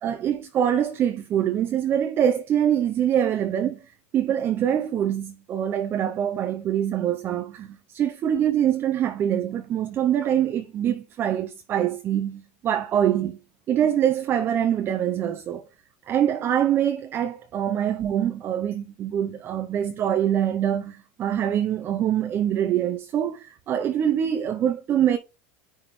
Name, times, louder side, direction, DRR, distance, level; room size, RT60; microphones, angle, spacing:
voice 1, 0.0-3.9 4.1-13.4 13.7-15.6 16.1-25.2, right 10 dB, 35° right, 0.6 m, -24 dB
9.6 x 3.6 x 3.1 m
supercardioid pair, 120°, 6 cm